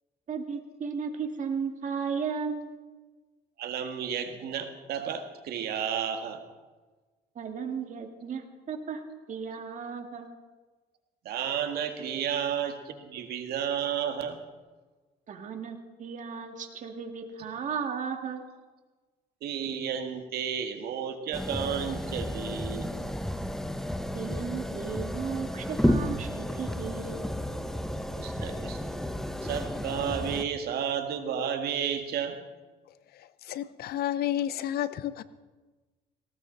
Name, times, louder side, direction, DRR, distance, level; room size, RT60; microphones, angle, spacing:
voice 1, 0.3-2.7 7.4-9.0 9.3-10.3 15.3-18.4 24.1-27.2, right 6 dB, 50° right, 2.3 m, -35 dB
voice 2, 3.6-6.4 11.3-14.4 19.4-22.9 28.2-28.8 29.4-32.4, right 8 dB, 70° right, 1.9 m, -32 dB
sound 1, 21.3-30.4, equal, ahead, 1.0 m, -32 dB
voice 3, 33.1-35.2, left 11 dB, 65° left, 0.8 m, -31 dB
18.5 x 18.0 x 4.1 m
cardioid pair, 110°, 17 cm